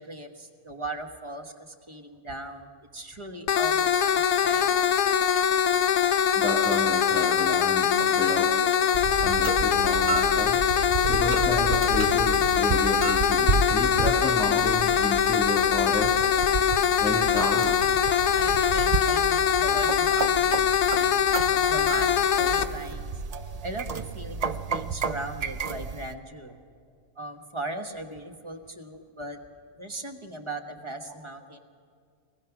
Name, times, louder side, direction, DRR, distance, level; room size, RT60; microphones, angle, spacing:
voice 1, 0.0-4.8 18.3-23.1 23.6-26.6 27.1-29.4 29.8-31.6, right 1 dB, 20° right, 4 dB, 1.3 m, -39 dB
sound 1, 3.5-22.6, left 8 dB, 60° left, 0.9 m, -23 dB
voice 2, 6.3-8.5 9.2-10.7 11.0-16.5 17.0-17.8 23.3-23.4, left 1 dB, 5° left, -5 dB, 3.0 m, -31 dB
sound 2, 8.9-26.1, right 4 dB, 75° right, 0.3 m, -32 dB
24.0 x 20.0 x 6.0 m, 2.1 s
omnidirectional pair, 1.5 m